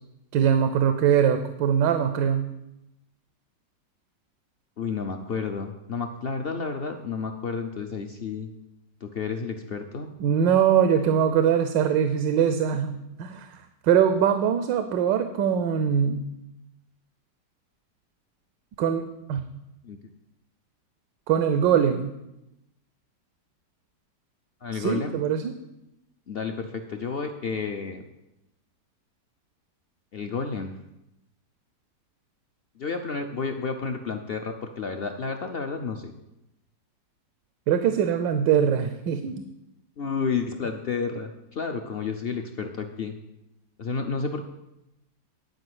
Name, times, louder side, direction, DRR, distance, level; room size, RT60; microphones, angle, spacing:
voice 1, 0.3-2.5 10.2-13.5 13.8-16.3 18.8-19.0 19.3-19.5 21.3-22.1 24.7-25.5 37.7-39.4, right 8 dB, 90° right, 8 dB, 1.4 m, -22 dB
voice 2, 4.8-8.5 9.0-10.1 19.8-20.0 24.6-25.2 26.3-28.0 30.1-30.8 32.8-36.1 40.0-43.2 43.8-44.4, left 5 dB, 65° left, 5 dB, 0.5 m, -31 dB
11.0 x 4.9 x 7.9 m, 0.88 s
omnidirectional pair, 1.9 m